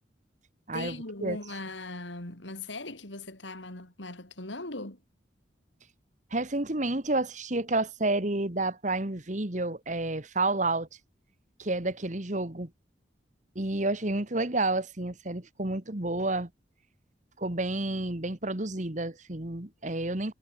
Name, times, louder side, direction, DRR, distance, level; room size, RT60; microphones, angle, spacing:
voice 1, 0.7-5.0, left 2 dB, 85° left, 4.3 m, -39 dB
voice 2, 6.3-10.9 11.6-12.7 13.6-16.5 17.4-20.3, right 2 dB, 40° right, 1.9 m, -30 dB
head